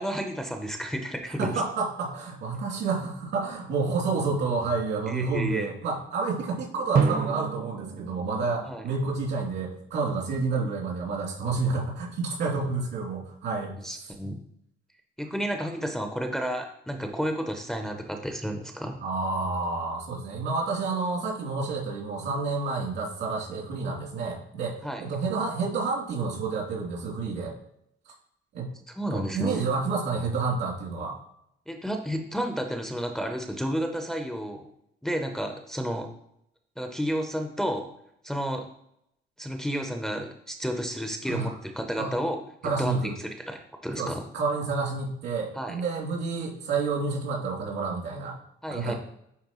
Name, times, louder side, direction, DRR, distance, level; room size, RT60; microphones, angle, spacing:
voice 1, 0.0-1.5 5.1-5.7 8.6-8.8 13.8-14.4 15.2-19.0 24.8-25.0 29.0-29.6 31.7-34.7 35.0-36.1 36.8-37.9 38.2-38.7 39.4-44.3 45.6-45.8 48.6-48.9, equal, 5° left, 4 dB, 0.6 m, -31 dB
voice 2, 1.4-14.1 19.0-27.5 28.5-28.7 29.1-31.2 41.3-41.5 42.0-42.1 42.6-43.1 44.0-48.4 48.7-49.0, right 4 dB, 85° right, -4 dB, 2.7 m, -29 dB
Drum, 6.9-9.6, right 5 dB, 55° right, 0.8 m, -30 dB
9.3 x 4.2 x 3.0 m, 0.74 s
cardioid pair, 145°, 18 cm